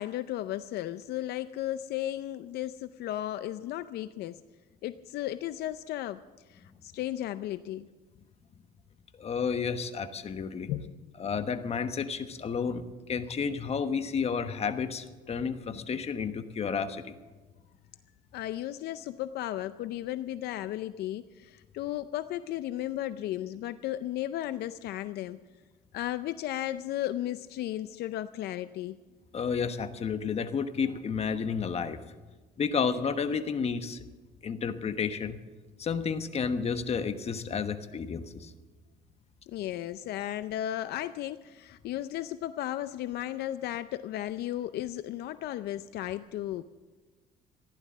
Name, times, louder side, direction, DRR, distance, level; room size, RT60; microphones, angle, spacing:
voice 1, 0.0-4.4 4.8-6.2 6.5-7.9 10.7-11.0 18.3-25.4 25.9-29.0 39.5-46.6, left 13 dB, 75° left, 13 dB, 0.5 m, -35 dB
voice 2, 9.2-10.7 11.2-12.8 13.1-17.2 29.3-32.0 32.6-34.0 34.4-35.4 35.8-38.5, left 6 dB, 40° left, 9 dB, 1.2 m, -31 dB
15.0 x 11.5 x 7.3 m, 1.3 s
cardioid pair, 110°, 17 cm